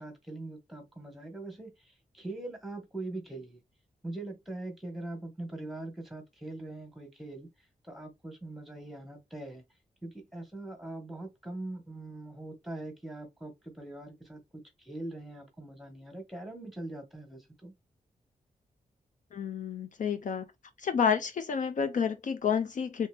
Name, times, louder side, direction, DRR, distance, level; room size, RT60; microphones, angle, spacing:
voice 1, 0.0-1.7 2.1-3.6 4.0-7.5 7.8-9.6 10.0-17.7, right 2 dB, ahead, 1.4 m, -42 dB
voice 2, 19.3-20.5 20.8-23.1, left 7 dB, 60° left, 0.5 m, -29 dB
3.4 x 2.7 x 3.3 m
wide cardioid pair, 90°, 15 cm